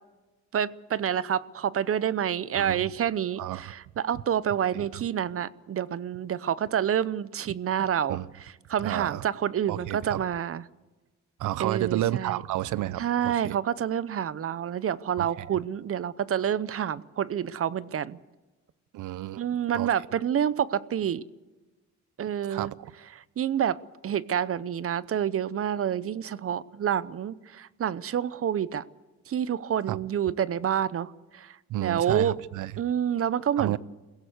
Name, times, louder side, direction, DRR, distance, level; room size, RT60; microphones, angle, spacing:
voice 1, 0.5-10.6 11.6-12.4 13.0-18.2 19.4-21.2 22.2-22.7 23.4-23.8 24.0-28.8 29.3-32.3 32.8-33.8, right 9 dB, 50° right, 18 dB, 0.8 m, -28 dB
voice 2, 2.5-2.9 3.4-3.7 4.7-4.9 8.1-8.3 8.8-9.2 9.7-10.2 11.4-13.6 15.2-15.6 18.9-19.4 19.7-19.9 22.5-22.9 29.9-30.0 31.7-32.7 33.6-33.8, right 14 dB, 80° right, 19 dB, 0.8 m, -31 dB
22.5 x 16.5 x 8.0 m, 1.2 s
cardioid pair, 90°, 30 cm